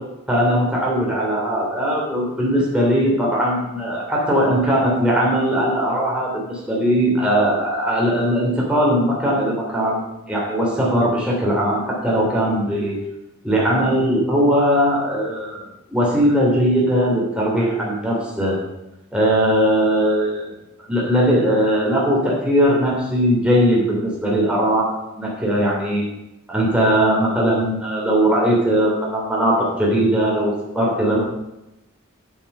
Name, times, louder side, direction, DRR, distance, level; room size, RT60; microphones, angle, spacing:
voice 1, 0.3-13.0 13.4-18.6 19.1-20.5 20.9-26.0 26.5-31.2, equal, 5° right, -4 dB, 3.0 m, -19 dB
8.7 x 8.1 x 5.5 m, 0.93 s
head